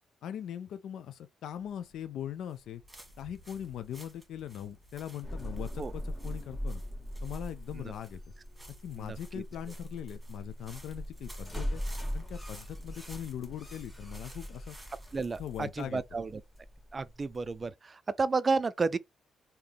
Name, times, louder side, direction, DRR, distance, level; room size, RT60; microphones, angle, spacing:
voice 1, 0.2-2.8 3.2-6.8 7.2-8.2 8.8-11.8 12.1-14.8 15.4-16.0, left 10 dB, 75° left, 0.3 m, -40 dB
sound 1, 1.5-17.0, right 1 dB, 10° right, 1.6 m, -55 dB
sound 2, 5.2-17.7, equal, 10° left, 1.7 m, -40 dB
voice 2, 15.1-16.4 16.9-19.0, right 4 dB, 30° right, 0.4 m, -31 dB
3.6 x 2.8 x 3.4 m
cardioid pair, 90°, 0 cm